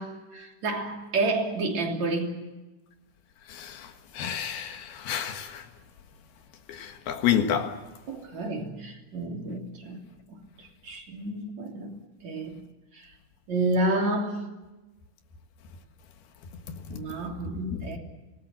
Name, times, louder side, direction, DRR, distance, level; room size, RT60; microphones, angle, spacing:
voice 1, 0.0-2.6 8.1-11.9 12.2-12.6 12.9-13.1 13.5-14.4 16.9-18.0, right 2 dB, 50° right, 4.2 m, -30 dB
voice 2, 3.5-5.7 6.7-7.8 16.9-17.0, left 9 dB, 85° left, 3.5 m, -29 dB
26.5 x 19.5 x 7.6 m
omnidirectional pair, 4.3 m